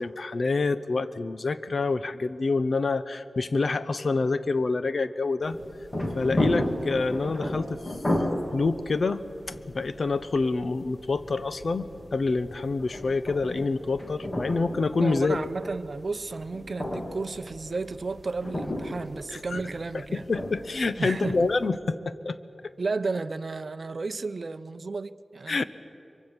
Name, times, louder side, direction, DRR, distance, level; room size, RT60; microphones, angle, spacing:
voice 1, 0.0-5.6 6.1-7.9 8.5-9.2 9.7-15.5 19.3-19.6 19.9-22.0 22.2-22.4 22.6-22.7 25.5-25.6, left 3 dB, 60° left, 0.8 m, -27 dB
sound 1, 5.4-21.7, left 1 dB, 35° left, 2.7 m, -34 dB
voice 2, 15.0-20.3 21.0-21.5 22.8-25.6, right 3 dB, 55° right, 0.6 m, -33 dB
23.5 x 23.0 x 7.3 m
wide cardioid pair, 85°, 0 cm